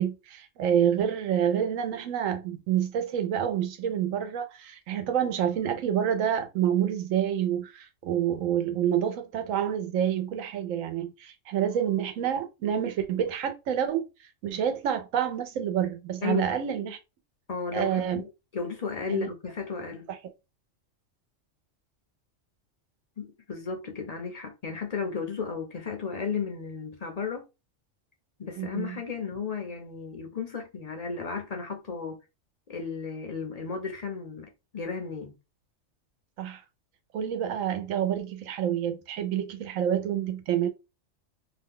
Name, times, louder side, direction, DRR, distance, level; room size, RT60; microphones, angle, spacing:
voice 1, 0.0-14.0 14.4-17.0 17.7-18.2 19.1-19.3 20.1-20.2 28.6-29.0 36.4-36.6 37.1-40.7, right 9 dB, 85° right, 1.0 m, -28 dB
voice 2, 16.2-16.9 17.5-18.2 18.5-20.1 23.2-27.5 28.4-32.2 32.7-35.3, left 5 dB, 45° left, 0.5 m, -34 dB
2.8 x 2.2 x 3.6 m
omnidirectional pair, 1.3 m